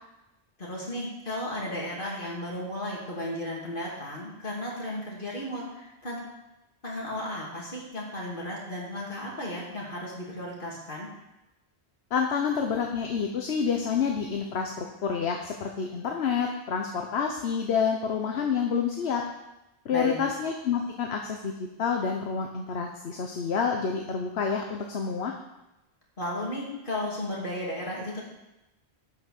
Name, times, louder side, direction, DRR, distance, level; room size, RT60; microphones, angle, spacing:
voice 1, 0.6-6.2 6.8-11.1 19.9-20.2 26.2-28.2, left 1 dB, 50° left, -4 dB, 3.0 m, -34 dB
voice 2, 12.1-19.2 19.8-21.5 21.8-25.3, left 6 dB, 75° left, 3 dB, 1.1 m, -28 dB
11.5 x 5.7 x 6.6 m, 0.96 s
omnidirectional pair, 1.1 m